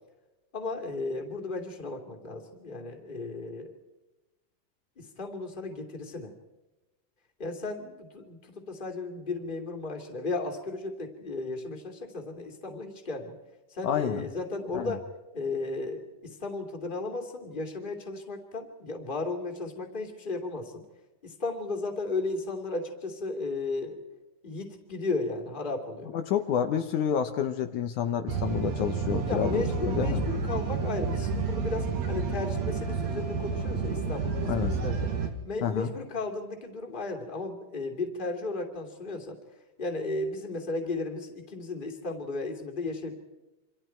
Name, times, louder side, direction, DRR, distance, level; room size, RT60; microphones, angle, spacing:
voice 1, 0.5-3.7 5.0-6.3 7.4-13.3 13.7-15.0 15.3-20.8 21.2-24.0 24.4-26.1 28.8-35.1 35.4-39.4 39.8-43.1, left 3 dB, 15° left, 3 dB, 2.4 m, -35 dB
voice 2, 13.8-14.3 14.7-15.0 26.1-30.2 34.5-34.8 35.6-35.9, left 8 dB, 70° left, 6 dB, 2.4 m, -29 dB
sound 1, 28.3-35.3, right 5 dB, 60° right, 3.2 m, -30 dB
28.5 x 25.5 x 4.6 m, 1.1 s
omnidirectional pair, 3.7 m